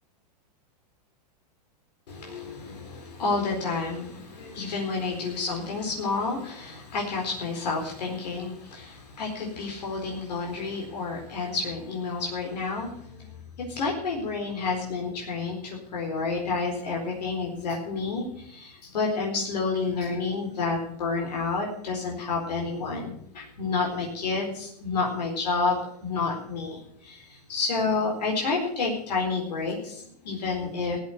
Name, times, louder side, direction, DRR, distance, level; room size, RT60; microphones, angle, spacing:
voice 1, 2.1-31.0, left 4 dB, 80° left, -1 dB, 4.3 m, -30 dB
15.5 x 8.1 x 8.1 m, 0.70 s
hypercardioid pair, 125°, 21 cm